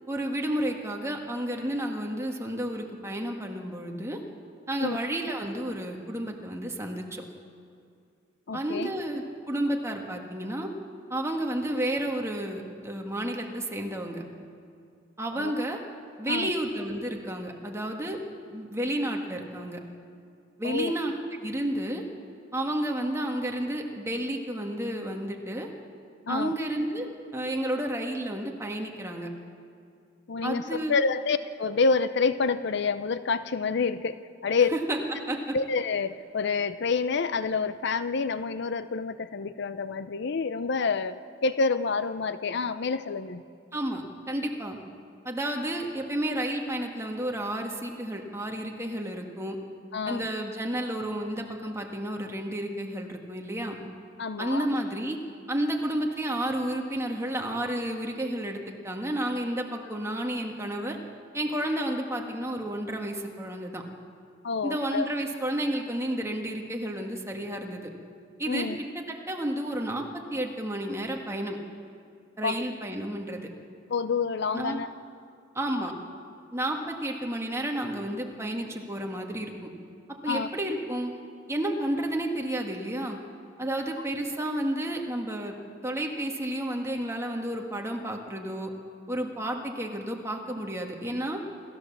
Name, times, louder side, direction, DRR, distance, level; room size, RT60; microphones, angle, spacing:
voice 1, 0.1-4.2 4.7-7.2 8.5-10.7 11.1-14.2 15.2-15.8 16.2-18.2 18.5-19.8 20.6-21.1 21.4-22.0 22.5-25.7 26.3-27.1 27.3-29.3 30.4-30.9 34.7-35.0 35.3-35.5 43.7-44.8 45.2-49.6 50.1-53.8 54.4-55.2 55.5-61.0 61.3-63.8 64.6-67.9 68.4-71.6 72.4-73.5 74.5-74.8 75.6-75.9 76.5-79.7 80.2-81.1 81.5-83.2 83.6-85.5 85.8-88.7 89.1-91.4, right 1 dB, 15° right, 1 dB, 1.8 m, -31 dB
voice 2, 8.5-8.9 15.3-15.5 16.3-16.5 20.6-20.9 26.3-26.5 30.3-30.6 30.9-34.7 35.5-41.2 41.4-43.4 49.9-50.3 54.2-54.7 64.4-65.1 68.5-68.8 72.4-72.6 73.9-74.9 80.3-80.5, left 4 dB, 65° left, 13 dB, 0.6 m, -28 dB
27.5 x 14.0 x 7.3 m, 2.4 s
head